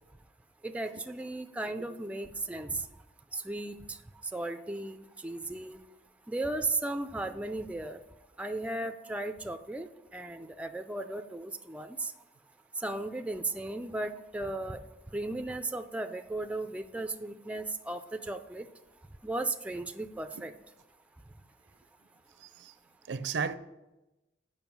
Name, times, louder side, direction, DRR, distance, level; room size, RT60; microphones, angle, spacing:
voice 1, 0.6-2.9 3.3-4.0 4.3-5.8 6.3-8.0 8.4-12.1 12.8-14.8 15.1-18.7 19.2-20.5, right 2 dB, 5° right, 0.3 m, -36 dB
voice 2, 22.4-22.7 23.1-23.5, right 5 dB, 80° right, 0.5 m, -34 dB
7.1 x 5.4 x 5.9 m
head